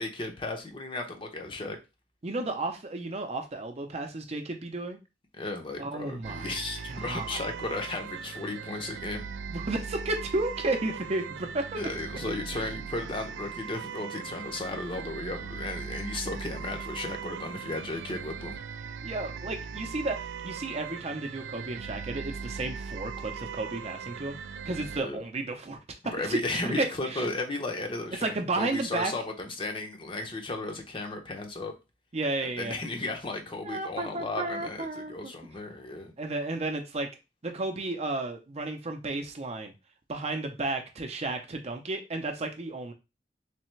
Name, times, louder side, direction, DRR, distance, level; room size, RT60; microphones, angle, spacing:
voice 1, 0.0-1.8 5.3-9.2 11.7-18.6 25.0-25.2 26.1-31.7 32.4-36.1, left 2 dB, 30° left, 3 dB, 0.7 m, -35 dB
voice 2, 2.2-5.0 5.8-6.6 6.9-7.4 9.5-11.8 19.0-24.4 24.6-25.8 26.0-26.4 26.6-27.3 28.2-29.1 32.1-32.8 33.6-35.3 36.2-37.1 37.4-39.7 40.1-42.9, right 2 dB, 40° right, 5 dB, 0.6 m, -33 dB
sound 1, 6.2-25.0, right 6 dB, 75° right, 0.3 m, -39 dB
3.3 x 3.3 x 3.1 m, 0.27 s
head